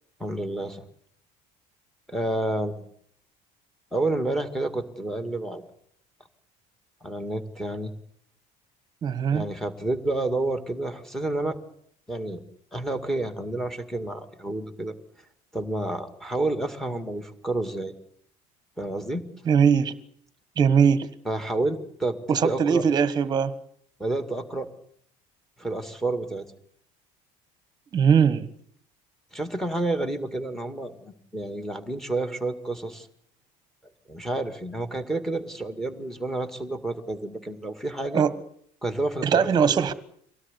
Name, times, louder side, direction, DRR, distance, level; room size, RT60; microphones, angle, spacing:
voice 1, 0.2-0.8 2.1-2.8 3.9-5.6 7.0-7.9 9.3-11.6 12.1-12.4 12.7-14.9 15.5-17.9 18.8-19.2 21.3-22.9 24.0-24.7 25.6-26.5 29.3-33.1 34.1-38.2 38.8-39.8, right 2 dB, ahead, 2.0 m, -29 dB
voice 2, 9.0-9.4 19.4-19.9 20.6-21.1 22.3-23.5 27.9-28.5 38.1-38.3 39.2-39.9, right 7 dB, 25° right, 1.4 m, -20 dB
24.5 x 17.5 x 9.9 m
cardioid pair, 175°, 16 cm